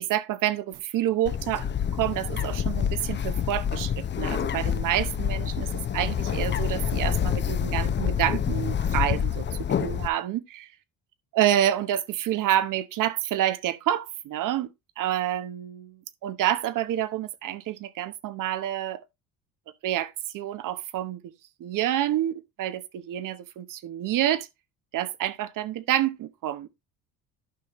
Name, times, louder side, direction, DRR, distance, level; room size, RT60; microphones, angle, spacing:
voice 1, 0.0-1.7 1.9-10.6 11.3-14.7 15.0-19.0 19.8-21.2 21.6-24.5 24.9-26.7, right 12 dB, 55° right, 1.0 m, -28 dB
Bird, 1.3-10.1, left 8 dB, 30° left, 0.7 m, -27 dB
11.5 x 5.7 x 3.1 m
cardioid pair, 105°, 38 cm